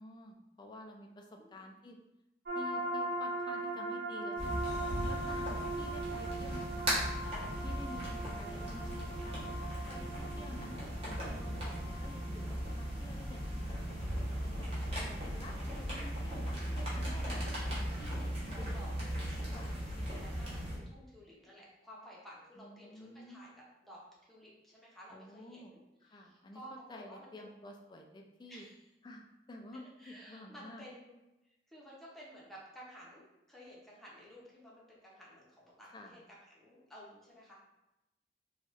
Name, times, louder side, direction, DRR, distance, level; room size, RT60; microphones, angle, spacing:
voice 1, 0.0-2.0 2.5-4.7 5.1-7.1 7.6-10.8 11.0-14.0 14.4-14.7 15.1-17.4 17.7-18.9 19.5-19.7 22.6-23.4 25.1-25.7 26.0-26.6 26.9-28.7 29.0-30.9 35.9-36.2, left 1 dB, 25° left, 2 dB, 0.3 m, -51 dB
sound 1, 2.5-13.8, right 2 dB, 65° right, 0.6 m, -40 dB
sound 2, 4.4-20.8, equal, 35° right, 1.0 m, -38 dB
voice 2, 17.5-18.9 19.5-24.0 24.3-27.5 28.5-28.8 29.7-31.2 31.4-37.5, equal, ahead, -6 dB, 0.7 m, -54 dB
3.0 x 2.3 x 3.0 m, 0.94 s
head